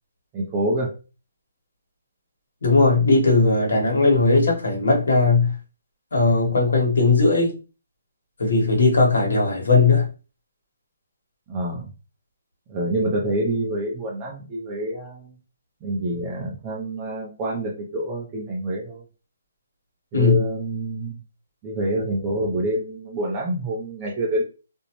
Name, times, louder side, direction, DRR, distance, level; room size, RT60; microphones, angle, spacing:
voice 1, 0.3-0.9 11.5-11.9 12.7-15.4 15.8-19.0 20.1-21.2 21.6-24.4, right 1 dB, 15° right, 0.4 m, -27 dB
voice 2, 2.6-5.5 6.1-7.5 8.4-10.1 20.1-20.4, left 3 dB, 70° left, 1.1 m, -18 dB
2.5 x 2.1 x 2.9 m
hypercardioid pair, 175°, 0 cm